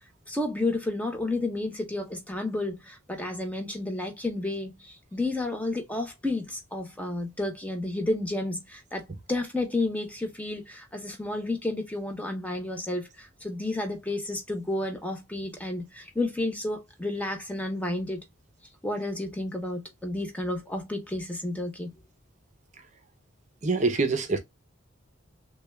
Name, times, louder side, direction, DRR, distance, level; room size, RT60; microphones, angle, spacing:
voice 1, 0.3-18.2 18.8-21.9, left 2 dB, 5° left, 0.6 m, -31 dB
voice 2, 23.6-24.4, right 3 dB, 35° right, 0.6 m, -25 dB
6.3 x 2.2 x 2.2 m
head